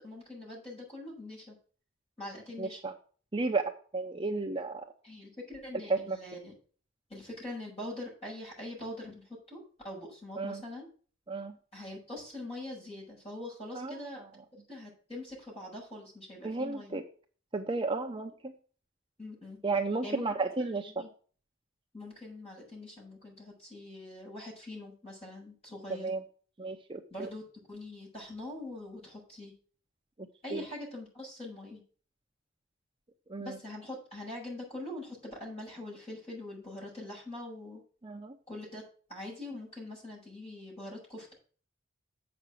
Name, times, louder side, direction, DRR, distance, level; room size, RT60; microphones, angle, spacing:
voice 1, 0.0-1.6 2.2-2.8 5.0-6.5 7.1-10.9 11.7-14.2 14.7-17.0 19.2-19.6 20.0-21.1 21.9-26.1 27.1-27.4 27.7-29.5 30.4-31.8 33.4-37.8 38.5-38.8 39.1-41.3, left 1 dB, 30° left, -4 dB, 6.6 m, -43 dB
voice 2, 2.6-2.9 3.3-4.8 5.9-6.2 10.4-10.6 11.3-11.5 13.7-14.0 16.4-17.0 17.5-18.5 19.6-21.0 25.9-26.2 26.6-27.3 30.5-30.6 33.3-33.6 38.0-38.3, right 3 dB, 25° right, 3 dB, 0.7 m, -33 dB
7.9 x 6.2 x 7.6 m, 0.42 s
head